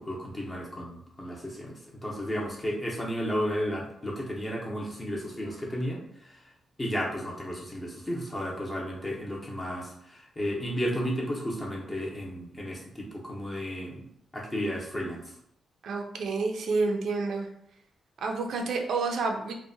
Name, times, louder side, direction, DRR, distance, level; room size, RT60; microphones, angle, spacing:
voice 1, 0.0-1.8 2.0-6.0 6.8-14.0 14.3-15.2, equal, 20° left, -2 dB, 0.6 m, -33 dB
voice 2, 15.8-17.5 18.2-19.5, right 3 dB, 65° right, 2 dB, 0.4 m, -29 dB
2.6 x 2.0 x 2.6 m, 0.71 s
wide cardioid pair, 150°, 0 cm